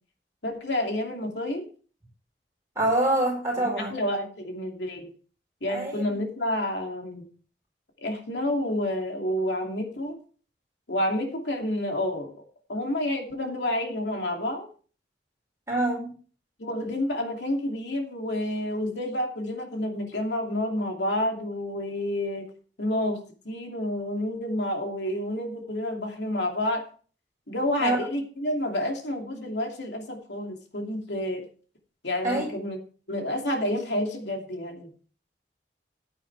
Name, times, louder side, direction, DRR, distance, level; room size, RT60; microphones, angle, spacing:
voice 1, 0.4-1.6 3.8-5.1 5.6-7.3 8.0-10.2 10.9-12.3 12.7-14.7 16.6-22.5 22.8-26.8 27.5-31.4 32.0-32.8 33.1-34.9, left 1 dB, 85° left, 2 dB, 2.6 m, -29 dB
voice 2, 2.7-3.9 5.7-6.2 15.7-16.1 27.8-28.0 32.2-32.5, right 1 dB, 15° right, -3 dB, 4.7 m, -25 dB
14.5 x 8.6 x 3.3 m, 0.39 s
head